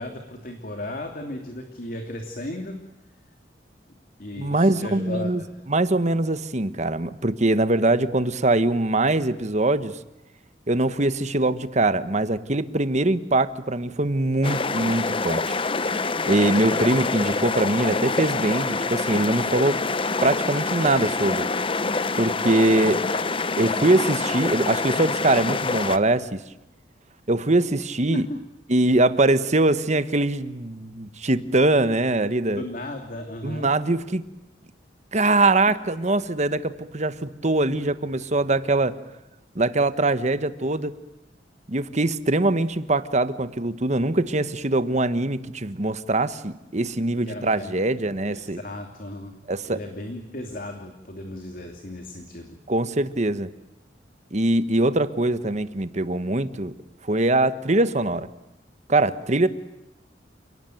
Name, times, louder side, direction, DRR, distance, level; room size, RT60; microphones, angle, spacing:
voice 1, 0.0-2.8 4.2-5.5 28.1-28.4 32.5-33.7 47.2-47.8 48.3-49.3 49.6-52.6, left 1 dB, 50° left, 4 dB, 2.8 m, -35 dB
voice 2, 4.4-5.4 5.7-10.0 10.7-15.6 16.3-19.8 20.2-21.5 22.2-23.1 23.6-26.4 27.3-28.2 28.7-32.6 33.4-34.2 35.1-39.0 39.5-41.0 41.7-48.6 49.5-49.8 52.7-53.5 54.3-56.7 57.0-58.3 58.9-59.5, right 2 dB, 40° right, 12 dB, 1.3 m, -22 dB
sound 1, 14.4-26.0, left 3 dB, 30° left, 0.9 m, -26 dB
29.0 x 18.5 x 9.3 m, 0.97 s
head